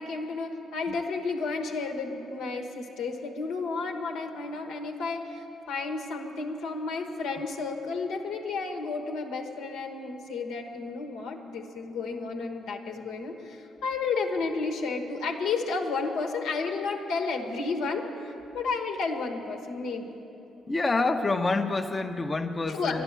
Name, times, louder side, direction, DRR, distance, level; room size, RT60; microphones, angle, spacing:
voice 1, 0.0-20.2 22.7-23.0, left 4 dB, 90° left, 3 dB, 1.2 m, -32 dB
voice 2, 20.7-23.0, left 3 dB, 25° left, 5 dB, 0.6 m, -27 dB
11.0 x 11.0 x 8.1 m, 2.9 s
cardioid pair, 90°, 0 cm